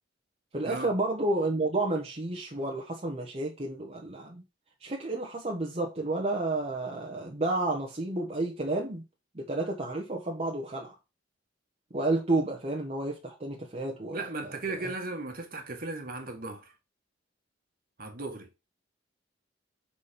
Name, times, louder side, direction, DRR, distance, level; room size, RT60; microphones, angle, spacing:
voice 1, 0.5-4.4 4.8-9.0 9.3-10.9 11.9-14.5 14.8-14.9, right 2 dB, 35° right, 1.2 m, -31 dB
voice 2, 14.1-16.7 18.0-18.5, right 2 dB, 50° right, 1.8 m, -36 dB
6.2 x 4.3 x 5.1 m
head